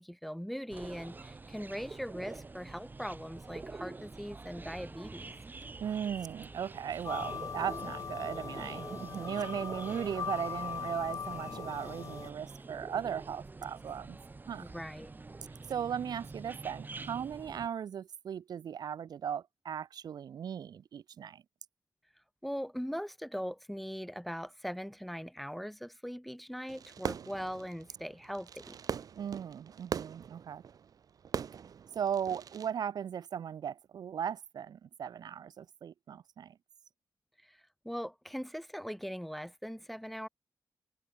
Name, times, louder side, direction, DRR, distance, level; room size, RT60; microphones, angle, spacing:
voice 1, 0.0-5.3 14.6-15.1 22.4-28.8 37.4-37.6 37.8-40.3, equal, ahead, 1.1 m, -40 dB
sound 1, 0.7-17.7, right 3 dB, 30° right, 4.5 m, -47 dB
voice 2, 5.8-14.2 14.5-14.6 15.7-21.4 29.2-30.6 31.9-36.5, right 8 dB, 80° right, 1.0 m, -37 dB
sound 2, 7.0-12.3, left 6 dB, 60° left, 0.9 m, -40 dB
Fireworks, 26.7-32.7, right 7 dB, 65° right, 0.6 m, -41 dB
wide cardioid pair, 120°, 7 cm